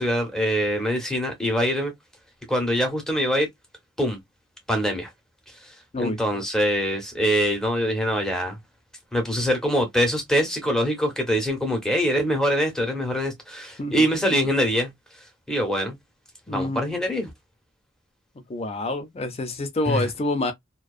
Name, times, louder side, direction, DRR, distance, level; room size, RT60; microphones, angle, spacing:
voice 1, 0.0-1.9 2.5-3.5 4.0-4.2 4.7-5.1 5.6-8.6 9.1-14.9 15.5-16.0 16.5-17.3 19.9-20.1, equal, 5° left, 0.8 m, -24 dB
voice 2, 13.8-14.5 16.5-16.9 18.5-20.5, left 2 dB, 30° left, 0.5 m, -28 dB
2.5 x 2.2 x 2.3 m
head